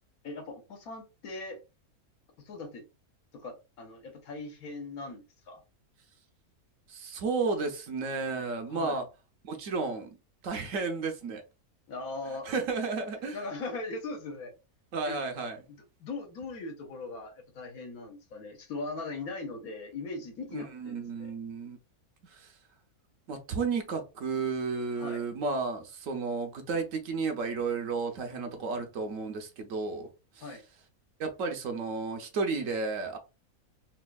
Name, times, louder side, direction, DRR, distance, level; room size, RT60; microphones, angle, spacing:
voice 1, 0.2-1.6 2.4-2.9 3.3-5.6 8.7-9.0 11.9-12.6 13.3-14.5 15.1-15.2 15.7-21.3 25.0-25.2 30.4-30.6, left 3 dB, 80° left, 1.3 m, -40 dB
voice 2, 6.9-9.0 9.4-10.1 10.4-11.4 12.4-13.4 14.9-15.6 20.5-21.8 22.2-22.5 23.3-30.1 30.3-30.5 31.2-33.2, right 4 dB, 70° right, 1.0 m, -32 dB
4.2 x 2.3 x 2.2 m
omnidirectional pair, 1.5 m